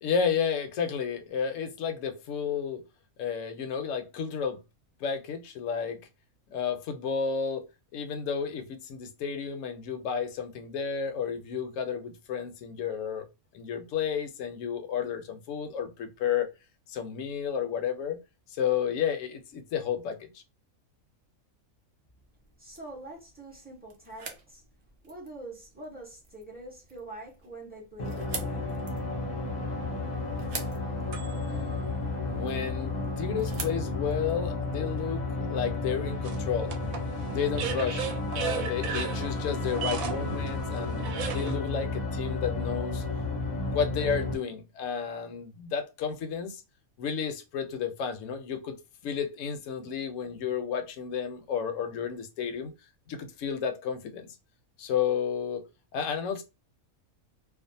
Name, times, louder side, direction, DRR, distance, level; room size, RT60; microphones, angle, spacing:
voice 1, 0.0-2.8 3.2-4.6 5.0-6.0 6.5-7.6 7.9-13.3 13.5-16.5 16.9-18.2 18.5-20.3 32.3-36.7 37.3-43.0 43.7-46.6 47.0-52.7 53.1-54.4 54.8-55.6 55.9-56.4, left 7 dB, 70° left, 0.9 m, -32 dB
sound 1, 22.2-35.1, right 5 dB, 60° right, 0.6 m, -46 dB
voice 2, 22.6-24.6 25.0-28.8, right 2 dB, 10° right, 0.5 m, -45 dB
sound 2, 28.0-44.3, left 3 dB, 45° left, 0.6 m, -32 dB
sound 3, 29.9-31.6 32.3-32.4 36.2-41.6, right 8 dB, 75° right, 1.0 m, -36 dB
2.5 x 2.3 x 2.6 m
omnidirectional pair, 1.5 m